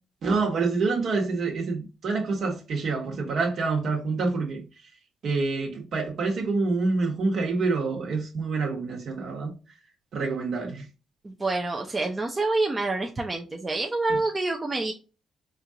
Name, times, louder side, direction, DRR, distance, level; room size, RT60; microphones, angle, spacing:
voice 1, 0.2-4.6 5.2-9.5 10.1-10.9, right 3 dB, 65° right, 1.3 m, -27 dB
voice 2, 11.2-14.9, right 2 dB, 25° right, 0.6 m, -27 dB
4.4 x 2.5 x 2.8 m
cardioid pair, 90°, 0 cm